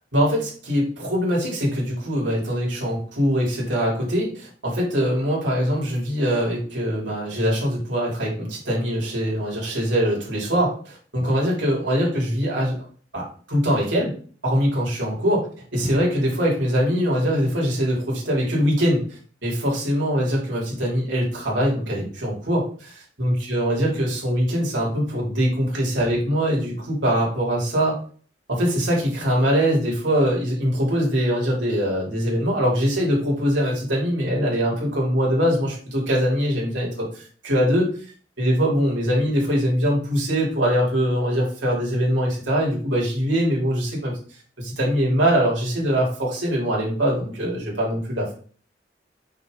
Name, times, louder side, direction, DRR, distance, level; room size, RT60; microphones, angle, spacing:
voice 1, 0.1-12.8 13.1-14.1 14.4-15.5 15.7-28.0 28.5-37.9 38.4-44.1 44.6-48.3, equal, 85° right, -3 dB, 3.3 m, -22 dB
6.1 x 5.3 x 3.8 m, 0.44 s
head